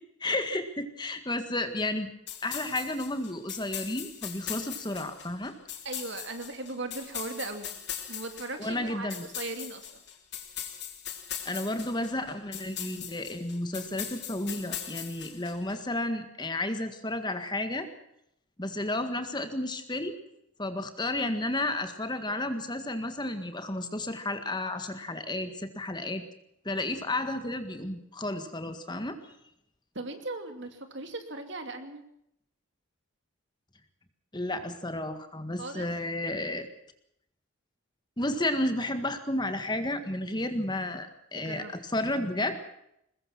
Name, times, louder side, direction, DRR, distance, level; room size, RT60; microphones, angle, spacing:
voice 1, 0.2-2.1 2.4-5.5 8.6-9.3 11.5-17.9 18.6-20.1 20.6-26.2 26.7-29.2 34.3-36.7 38.2-42.6, left 1 dB, 20° left, 8 dB, 1.8 m, -32 dB
sound 1, 2.3-15.8, left 10 dB, 50° left, 3.2 m, -40 dB
voice 2, 5.8-7.7 8.1-10.0 29.9-32.0 35.6-35.9 41.4-41.7, right 2 dB, 55° right, 7 dB, 2.7 m, -38 dB
22.5 x 21.0 x 6.1 m, 0.77 s
head